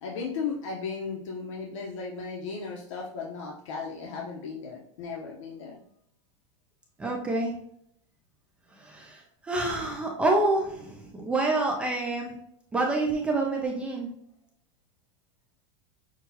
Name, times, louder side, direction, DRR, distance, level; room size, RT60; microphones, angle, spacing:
voice 1, 0.0-5.8, left 5 dB, 80° left, -2 dB, 0.9 m, -36 dB
voice 2, 7.0-7.6 8.8-12.4 12.7-14.1, right 2 dB, 5° right, 0 dB, 0.3 m, -27 dB
6.1 x 2.3 x 2.8 m, 0.71 s
supercardioid pair, 175°, 16 cm